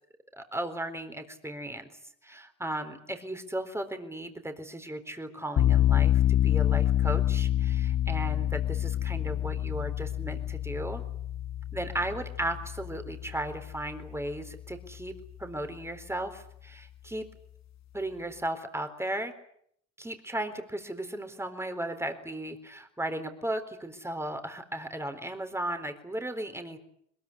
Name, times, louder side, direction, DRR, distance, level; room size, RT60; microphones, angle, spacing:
voice 1, 0.3-1.9 2.2-11.0 11.7-15.1 15.4-17.3 17.9-19.3 20.0-26.8, right 1 dB, 10° right, 7 dB, 4.0 m, -36 dB
sound 1, 5.6-14.4, left 12 dB, 60° left, 1.4 m, -27 dB
21.5 x 21.5 x 10.0 m, 0.68 s
cardioid pair, 90°, 30 cm